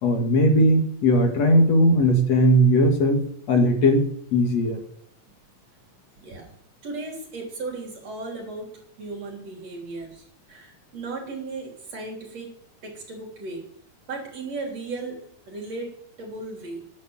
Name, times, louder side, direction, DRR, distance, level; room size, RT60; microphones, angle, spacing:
voice 1, 0.0-3.2 3.5-4.0 4.3-4.8, equal, 60° left, 3 dB, 3.1 m, -18 dB
voice 2, 6.2-6.5 6.8-10.2 10.5-12.5 12.8-13.6 14.1-16.9, right 3 dB, 60° right, 0 dB, 4.6 m, -36 dB
10.0 x 8.7 x 9.0 m, 0.66 s
omnidirectional pair, 3.4 m